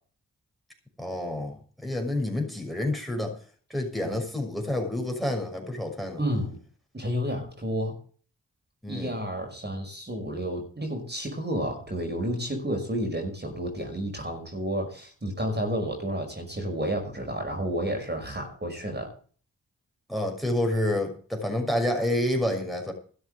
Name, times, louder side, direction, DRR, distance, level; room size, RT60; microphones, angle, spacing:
voice 1, 1.0-3.4 3.7-6.2 8.8-9.1 20.1-22.9, left 1 dB, ahead, 3 dB, 6.0 m, -28 dB
voice 2, 6.2-6.6 6.9-8.0 8.9-19.1, equal, 30° right, 3 dB, 5.6 m, -31 dB
13.0 x 7.8 x 7.9 m, 0.42 s
cardioid pair, 50°, 33 cm